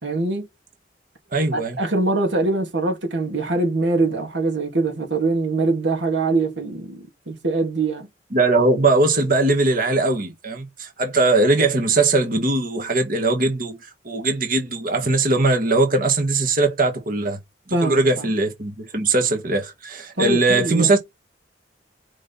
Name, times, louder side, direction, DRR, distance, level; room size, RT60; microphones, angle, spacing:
voice 1, 0.0-0.5 1.5-8.1 17.7-18.3 20.2-20.9, right 3 dB, 80° right, 2.7 m, -23 dB
voice 2, 1.3-1.8 8.3-17.4 17.7-21.0, right 2 dB, 50° right, 1.8 m, -20 dB
5.3 x 5.0 x 4.1 m
head